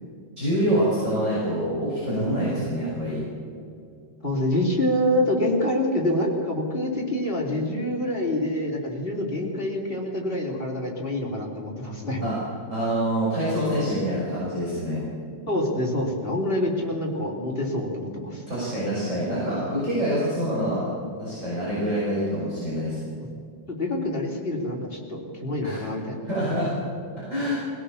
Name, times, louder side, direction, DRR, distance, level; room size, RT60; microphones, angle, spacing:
voice 1, 0.4-3.2 12.2-12.3 12.7-15.0 18.5-20.9 21.2-23.0 25.6-25.8 26.2-26.8 27.1-27.6, equal, 40° right, -8 dB, 6.5 m, -26 dB
voice 2, 4.2-12.2 15.5-18.4 23.7-26.2, left 1 dB, 30° left, -2 dB, 3.6 m, -26 dB
22.5 x 17.0 x 7.2 m, 2.5 s
omnidirectional pair, 2.0 m